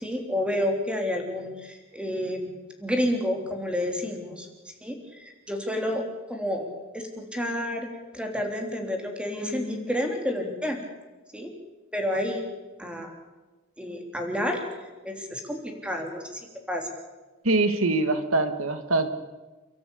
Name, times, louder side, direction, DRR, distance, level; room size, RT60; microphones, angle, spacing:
voice 1, 0.0-4.5 4.8-6.0 6.3-7.9 8.1-10.8 11.3-11.5 11.9-12.4 12.8-13.1 13.8-14.6 15.0-16.9, left 1 dB, 5° right, 3 dB, 3.3 m, -30 dB
voice 2, 17.4-19.1, right 2 dB, 75° right, 9 dB, 1.7 m, -23 dB
29.5 x 13.0 x 8.6 m, 1.2 s
head